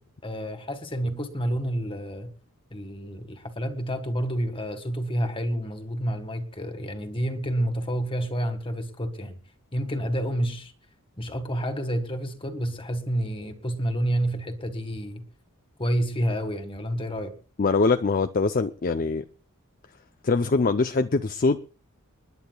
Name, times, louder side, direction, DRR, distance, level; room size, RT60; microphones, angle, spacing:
voice 1, 0.2-2.3 2.7-9.4 9.7-10.7 11.2-15.2 15.8-17.3, equal, 25° left, 1.7 m, -29 dB
voice 2, 17.6-19.2 20.2-21.6, left 4 dB, 40° left, 0.5 m, -23 dB
29.5 x 10.5 x 2.3 m
head